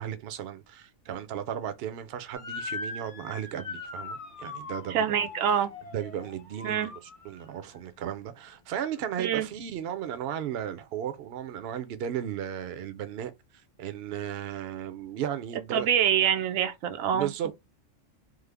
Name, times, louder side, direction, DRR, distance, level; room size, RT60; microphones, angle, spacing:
voice 1, 0.0-5.3 5.9-13.3 13.8-15.9 17.1-17.5, right 9 dB, 60° right, 0.7 m, -35 dB
Motor vehicle (road) / Siren, 2.3-7.6, left 4 dB, 35° left, 0.6 m, -40 dB
voice 2, 4.9-5.7 6.6-6.9 9.2-9.5 15.7-17.5, right 9 dB, 85° right, 1.0 m, -26 dB
3.2 x 2.0 x 3.3 m
omnidirectional pair, 1.4 m